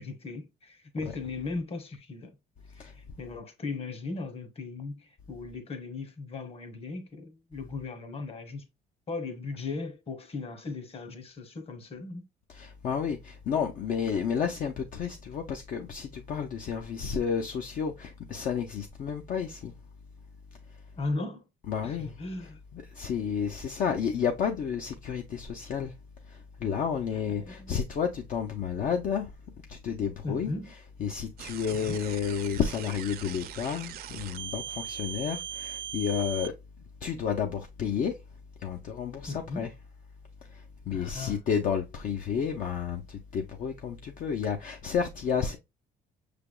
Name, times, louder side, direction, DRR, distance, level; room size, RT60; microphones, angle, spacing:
voice 1, 0.0-2.3 2.7-8.6 9.1-12.2 21.0-21.4 21.8-22.6 27.3-27.7 30.2-30.7 31.7-32.0 39.3-39.7 40.9-41.4, left 3 dB, 35° left, 1.1 m, -37 dB
voice 2, 12.5-19.7 20.7-20.8 21.7-22.2 22.7-26.0 26.2-29.3 29.7-30.5 31.0-36.5 37.0-38.2 38.6-39.7 40.4-45.6, left 7 dB, 55° left, 0.6 m, -31 dB
sound 1, 31.4-36.5, right 10 dB, 65° right, 0.6 m, -40 dB
5.8 x 3.4 x 2.3 m
cardioid pair, 110°, 17 cm